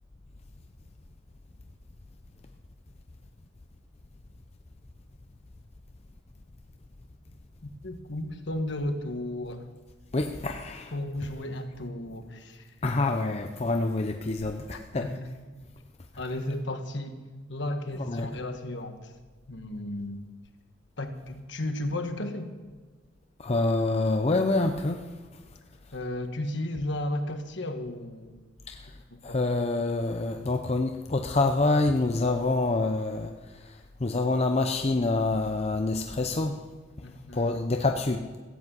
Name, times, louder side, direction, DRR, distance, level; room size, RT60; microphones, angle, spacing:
voice 1, 7.6-9.7 10.9-12.6 14.7-15.3 16.2-17.2 17.5-19.1 19.5-20.2 21.0-22.5 25.9-28.3 29.1-29.4 37.0-37.6, left 1 dB, 60° left, 6 dB, 1.4 m, -34 dB
voice 2, 10.1-10.9 12.8-15.1 18.0-18.3 23.4-25.4 28.7-29.0 29.2-36.7 37.0-37.1 37.3-38.4, left 2 dB, 30° left, 5 dB, 0.6 m, -27 dB
15.0 x 8.6 x 8.0 m, 1.3 s
head